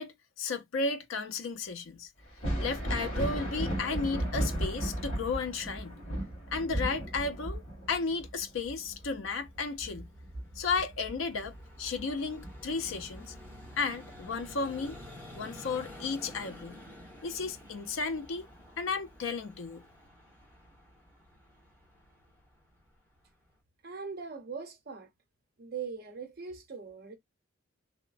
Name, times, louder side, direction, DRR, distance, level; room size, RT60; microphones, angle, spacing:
voice 1, 0.0-2.1 2.6-6.0 6.5-7.6 7.9-10.1 10.6-13.3 13.8-15.0 15.3-16.8 17.2-18.5 18.8-19.8, left 4 dB, 80° left, 0.5 m, -34 dB
Thunder, 2.3-11.6 12.0-13.2 14.8-14.9 15.6-15.8, equal, 30° left, 1.8 m, -35 dB
Vehicle, 8.8-23.5, left 1 dB, 10° left, 1.3 m, -51 dB
voice 2, 23.8-25.1 25.6-27.2, right 5 dB, 50° right, 0.7 m, -41 dB
3.0 x 2.0 x 2.4 m
head